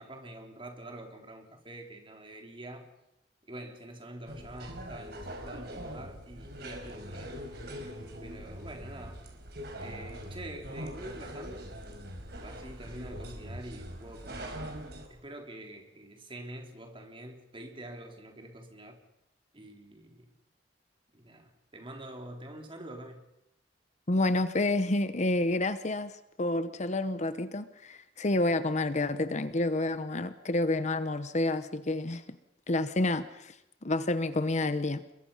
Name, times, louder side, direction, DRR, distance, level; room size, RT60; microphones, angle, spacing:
voice 1, 0.0-2.9 3.5-7.4 8.2-9.2 9.8-11.7 12.4-14.5 15.1-19.0 19.5-20.3 21.1-23.2, right 1 dB, 30° right, 3.8 m, -46 dB
sound 1, 4.3-15.1, equal, 65° right, 4.7 m, -42 dB
voice 2, 24.1-32.2 32.7-33.6 33.8-35.0, left 2 dB, 40° left, 1.0 m, -29 dB
29.5 x 22.5 x 5.7 m
head